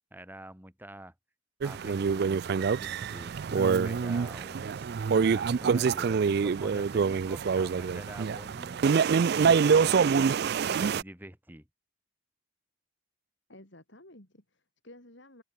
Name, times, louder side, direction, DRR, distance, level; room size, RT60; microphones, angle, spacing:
voice 1, 0.1-1.1 1.6-4.9 5.3-8.8 9.3-10.1 10.5-11.7, right 1 dB, 10° right, 2.9 m, -46 dB
sound 1, 1.6-11.0, right 6 dB, 50° right, 0.3 m, -26 dB
voice 2, 13.5-15.4, left 1 dB, 55° left, 4.1 m, -53 dB
open air
head